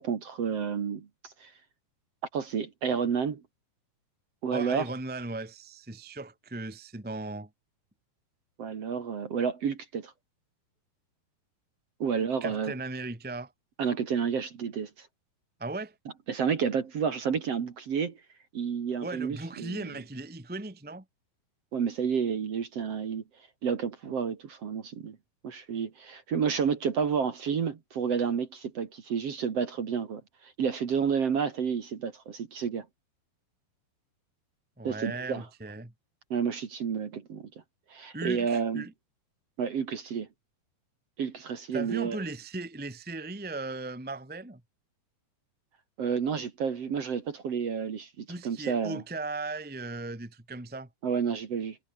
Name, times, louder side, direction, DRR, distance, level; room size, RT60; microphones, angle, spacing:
voice 1, 0.0-1.5 2.3-3.4 4.4-4.9 8.6-10.1 12.0-12.7 13.8-15.1 16.3-18.2 18.5-19.9 21.7-23.2 23.6-25.2 25.4-32.9 34.8-35.4 36.3-37.5 37.9-38.9 39.6-40.3 41.2-42.2 46.0-49.0 51.0-51.8, right 6 dB, 45° right, 2.3 m, -30 dB
voice 2, 4.5-7.5 12.4-13.5 15.6-15.9 19.0-21.0 34.8-35.9 38.1-38.9 41.7-44.6 48.3-50.9, right 2 dB, 5° right, 0.7 m, -37 dB
omnidirectional pair, 5.0 m